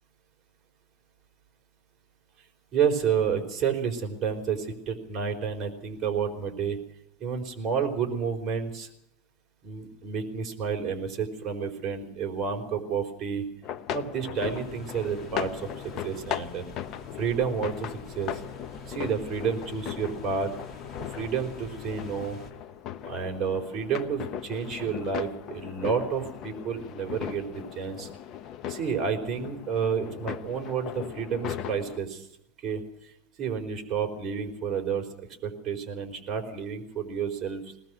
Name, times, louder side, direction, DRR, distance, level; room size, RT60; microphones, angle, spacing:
voice 1, 2.7-6.8 7.2-8.9 9.6-13.4 13.9-16.6 17.1-18.4 18.9-20.5 21.0-22.4 23.0-28.1 28.7-32.3 32.6-32.8 33.4-37.7, right 6 dB, 25° right, 1 dB, 4.4 m, -30 dB
sound 1, 13.6-32.0, left 10 dB, 35° left, 0.9 m, -38 dB
sound 2, 14.3-22.5, left 4 dB, 20° left, 3.1 m, -45 dB
21.5 x 19.5 x 6.3 m, 0.79 s
supercardioid pair, 155°, 0 cm